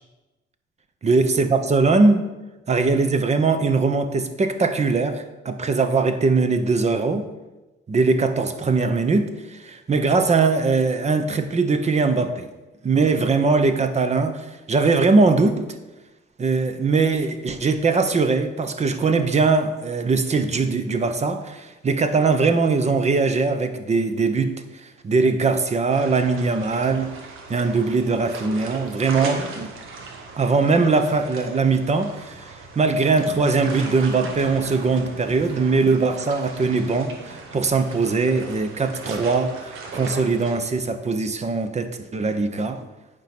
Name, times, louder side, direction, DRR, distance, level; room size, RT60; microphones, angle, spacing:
voice 1, 1.0-2.3 2.7-7.2 7.9-12.5 12.8-15.8 16.4-24.5 24.8-27.1 27.5-29.7 30.4-42.8, right 4 dB, 35° right, 9 dB, 1.0 m, -21 dB
sound 1, 25.9-40.6, right 3 dB, 90° right, 1.4 m, -37 dB
8.9 x 5.3 x 6.1 m, 1.1 s
cardioid pair, 90°, 20 cm